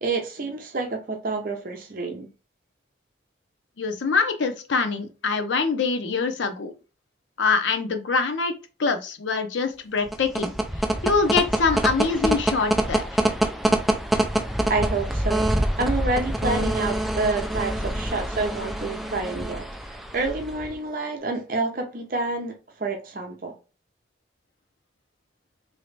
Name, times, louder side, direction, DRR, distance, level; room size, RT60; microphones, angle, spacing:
voice 1, 0.0-2.3 14.7-22.5 22.8-23.5, right 3 dB, 50° right, 0.6 m, -28 dB
voice 2, 3.8-6.7 7.4-8.5 8.8-10.5 11.0-13.2, left 4 dB, 85° left, 0.6 m, -24 dB
sound 1, 10.0-20.7, right 1 dB, ahead, 0.3 m, -25 dB
3.0 x 2.7 x 3.2 m
head